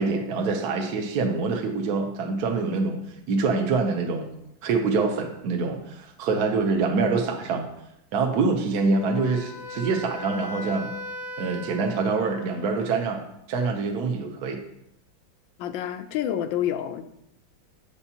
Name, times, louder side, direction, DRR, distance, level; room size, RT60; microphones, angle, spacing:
voice 1, 0.0-3.0 3.3-4.3 4.6-7.7 8.1-10.9 11.4-13.2 13.5-14.6, right 4 dB, 65° right, 2 dB, 1.1 m, -25 dB
Wind instrument woodwind instrument, 8.9-13.0, left 2 dB, 55° left, 1.0 m, -39 dB
voice 2, 15.6-17.0, left 10 dB, 80° left, 10 dB, 1.3 m, -28 dB
8.1 x 6.9 x 2.8 m, 0.81 s
omnidirectional pair, 2.1 m